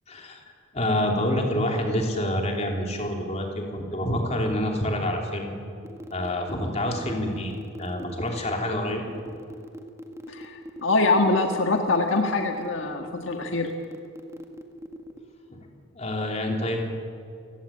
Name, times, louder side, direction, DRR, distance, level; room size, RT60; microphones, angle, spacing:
voice 1, 0.1-0.4 0.7-5.6 6.1-7.5 7.8-9.0 15.5-15.7 16.0-16.8, left 1 dB, 30° left, 1 dB, 3.5 m, -27 dB
sound 1, 5.8-15.2, equal, 15° right, 1.7 m, -41 dB
voice 2, 10.3-13.7, left 3 dB, 70° left, 4 dB, 1.5 m, -24 dB
29.0 x 16.5 x 8.9 m, 2.4 s
head